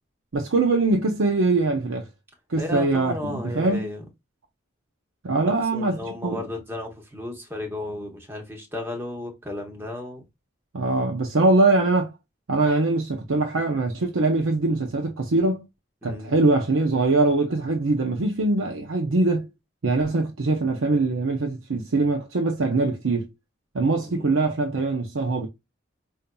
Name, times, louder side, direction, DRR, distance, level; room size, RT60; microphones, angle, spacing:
voice 1, 0.3-2.1 2.5-3.9 5.2-6.5 10.7-12.1 12.5-15.7 16.0-19.5 19.8-23.3 23.7-25.5, right 2 dB, 90° right, 0.7 m, -22 dB
voice 2, 2.6-4.0 5.7-10.2 16.0-16.3 24.1-24.4, left 1 dB, 10° right, 1.0 m, -34 dB
5.3 x 2.6 x 2.2 m
head